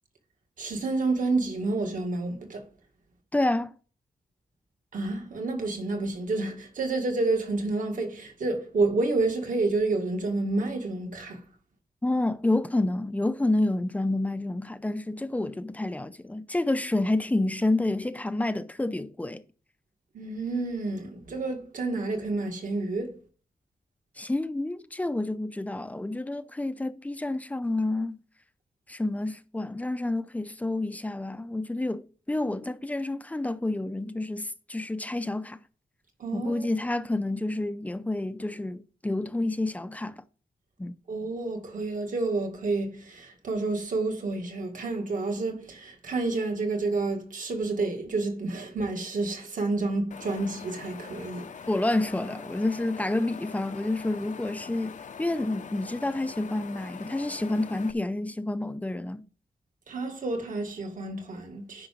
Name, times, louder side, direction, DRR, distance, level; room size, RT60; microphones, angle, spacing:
voice 1, 0.6-2.7 4.9-11.4 20.1-23.2 36.2-36.6 41.1-51.6 59.9-61.9, right 3 dB, 60° right, 2.1 m, -29 dB
voice 2, 3.3-3.7 12.0-19.4 24.2-28.2 28.9-35.6 36.3-40.2 40.8-41.0 51.7-59.2, left 2 dB, 10° left, 0.5 m, -29 dB
Wind, 50.1-57.9, left 6 dB, 55° left, 0.7 m, -43 dB
9.9 x 5.8 x 5.2 m
wide cardioid pair, 165°, 16 cm